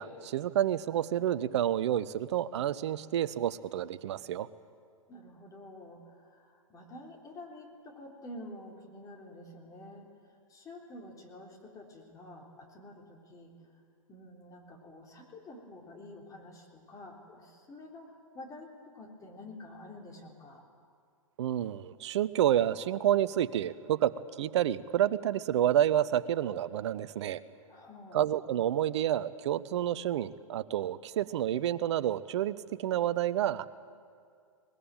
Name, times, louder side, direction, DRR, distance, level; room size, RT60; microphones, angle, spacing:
voice 1, 0.0-4.5 21.4-24.1 24.4-27.4 28.1-33.7, right 11 dB, 55° right, 16 dB, 0.9 m, -29 dB
voice 2, 5.1-10.1 10.5-13.7 14.1-20.6 27.7-28.2, left 1 dB, 20° left, 0 dB, 3.6 m, -49 dB
22.5 x 20.0 x 9.0 m, 2.2 s
figure-of-eight pair, 115°, 18 cm